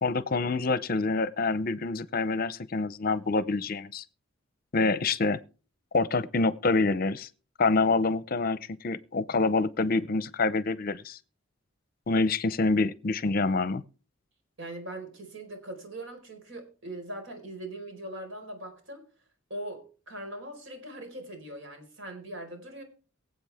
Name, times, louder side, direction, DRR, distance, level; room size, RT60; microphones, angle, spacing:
voice 1, 0.0-4.0 4.7-5.4 5.9-7.3 7.6-11.2 12.1-13.8, left 3 dB, 45° left, 0.6 m, -26 dB
voice 2, 14.6-19.0 19.5-22.8, right 1 dB, 70° right, 4.7 m, -41 dB
23.5 x 8.0 x 3.5 m
head